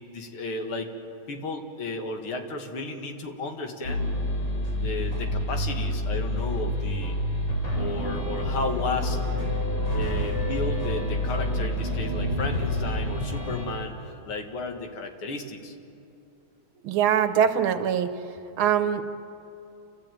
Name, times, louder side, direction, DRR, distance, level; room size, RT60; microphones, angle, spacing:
voice 1, 0.1-0.9 1.3-4.1 4.8-7.2 7.7-9.2 9.9-15.7, left 2 dB, 80° left, 4 dB, 2.7 m, -33 dB
sound 1, 3.8-13.7, left 1 dB, 65° left, 4.5 m, -28 dB
voice 2, 16.8-18.2 18.6-19.0, right 9 dB, 80° right, 10 dB, 1.9 m, -23 dB
29.5 x 14.5 x 9.1 m, 2.7 s
omnidirectional pair, 2.3 m